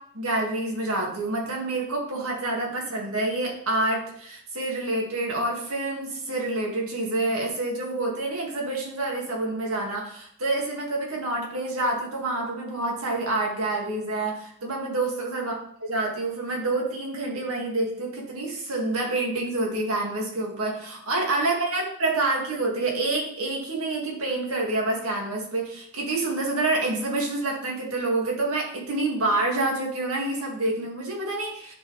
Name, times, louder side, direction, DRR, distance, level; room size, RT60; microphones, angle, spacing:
voice 1, 0.1-15.5 15.9-31.7, right 2 dB, 70° right, -1 dB, 2.1 m, -27 dB
10.0 x 5.4 x 3.3 m, 0.65 s
head